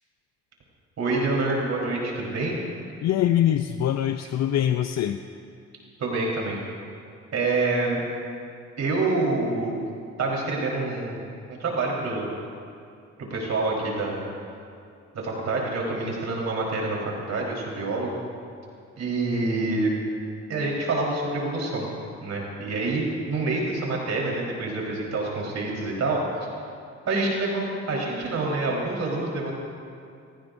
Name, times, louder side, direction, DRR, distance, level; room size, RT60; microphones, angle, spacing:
voice 1, 1.0-2.5 6.0-6.6 7.3-8.0 8.8-9.7 10.2-12.3 13.2-14.2 15.1-18.2 19.0-19.9 20.5-21.9 22.2-26.2 27.1-29.5, right 3 dB, 60° right, -3 dB, 4.3 m, -27 dB
voice 2, 3.0-5.2, left 11 dB, 60° left, 8 dB, 0.6 m, -23 dB
28.5 x 17.0 x 2.7 m, 2.4 s
cardioid pair, 90°, 30 cm